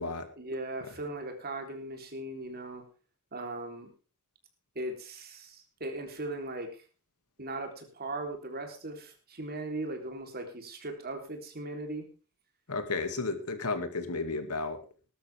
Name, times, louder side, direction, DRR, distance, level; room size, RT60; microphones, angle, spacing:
voice 1, 0.4-2.8 3.3-3.9 4.8-6.8 7.4-12.0, right 2 dB, 45° right, 4 dB, 3.6 m, -38 dB
voice 2, 12.7-14.8, left 3 dB, 90° left, 9 dB, 2.3 m, -33 dB
19.5 x 12.5 x 3.5 m, 0.33 s
head